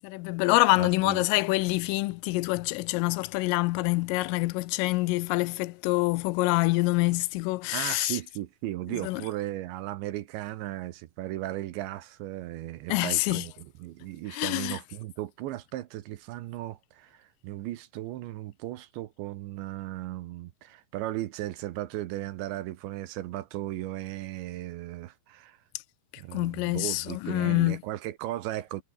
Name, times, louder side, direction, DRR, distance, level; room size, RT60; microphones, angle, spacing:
voice 1, 0.0-8.2 8.9-9.2 12.9-13.5 14.3-14.8 26.1-27.8, left 22 dB, 90° left, 3.3 m, -26 dB
voice 2, 0.8-1.2 7.7-25.6 26.2-28.8, right 15 dB, 70° right, 3.2 m, -36 dB
omnidirectional pair, 5.8 m